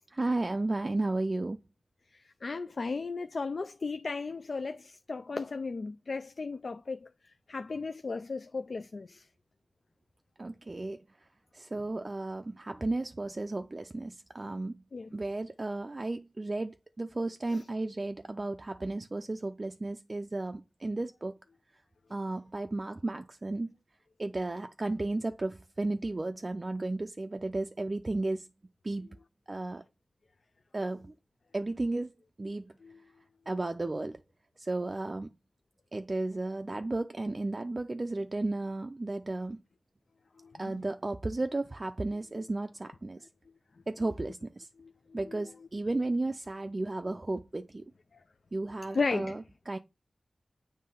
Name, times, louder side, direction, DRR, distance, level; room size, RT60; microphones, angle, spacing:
voice 1, 0.1-1.6 10.4-11.0 11.5-14.8 15.1-21.4 22.1-23.7 24.2-28.5 28.8-29.1 29.5-29.8 30.7-31.1 31.5-32.1 32.4-32.7 33.5-34.2 34.6-35.3 35.9-39.6 40.6-43.2 43.9-44.7 45.1-47.8 48.5-49.8, right 2 dB, 35° right, 0.4 m, -34 dB
voice 2, 2.4-7.1 7.5-9.2 14.9-15.1 17.5-17.6 32.8-33.0 40.4-40.8 42.3-42.4 44.8-45.5 48.9-49.4, left 4 dB, 65° left, 0.4 m, -35 dB
7.5 x 3.1 x 5.4 m
wide cardioid pair, 85°, 0 cm